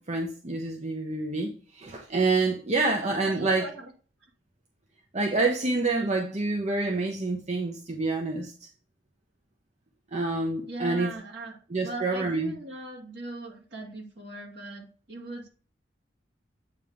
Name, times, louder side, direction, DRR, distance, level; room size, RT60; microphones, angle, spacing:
voice 1, 0.0-3.7 5.1-8.7 10.1-11.1 11.7-12.5, right 3 dB, 40° right, 0.9 m, -27 dB
voice 2, 3.2-3.9 10.7-15.5, right 2 dB, 70° right, 2.3 m, -39 dB
8.7 x 3.2 x 5.0 m
head